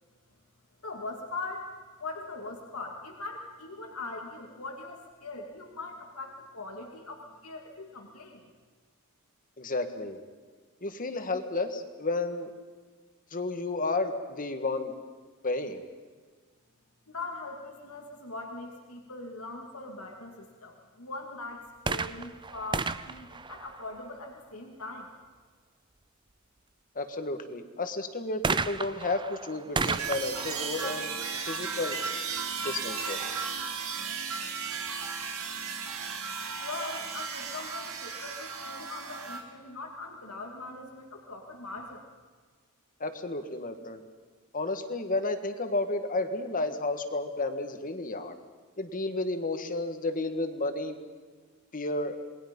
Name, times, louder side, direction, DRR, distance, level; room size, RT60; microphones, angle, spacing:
voice 1, 0.8-1.7 2.0-8.4 17.1-25.1 36.6-42.0, left 3 dB, 80° left, 1 dB, 2.6 m, -41 dB
voice 2, 9.6-10.2 10.8-12.5 13.3-14.9 15.4-15.8 27.0-31.1 31.5-32.0 32.6-33.2 43.0-44.0 44.5-48.4 48.8-51.0 51.7-52.2, left 2 dB, 40° left, 8 dB, 1.7 m, -32 dB
sound 1, 21.8-24.4 28.4-32.1 32.9-33.0, right 4 dB, 20° right, 0.5 m, -34 dB
sound 2, 29.8-39.4, right 5 dB, 70° right, 2.4 m, -35 dB
27.5 x 21.0 x 5.5 m, 1.5 s
head